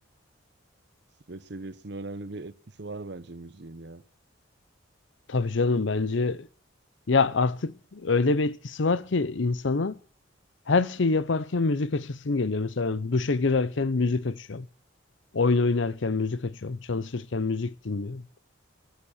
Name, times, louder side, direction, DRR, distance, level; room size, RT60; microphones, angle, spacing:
voice 1, 1.3-2.5 2.8-4.0, right 2 dB, 55° right, 0.8 m, -39 dB
voice 2, 5.3-6.5 7.1-10.0 10.7-14.7 15.3-18.2, left 3 dB, 65° left, 0.7 m, -26 dB
14.0 x 11.0 x 6.5 m
head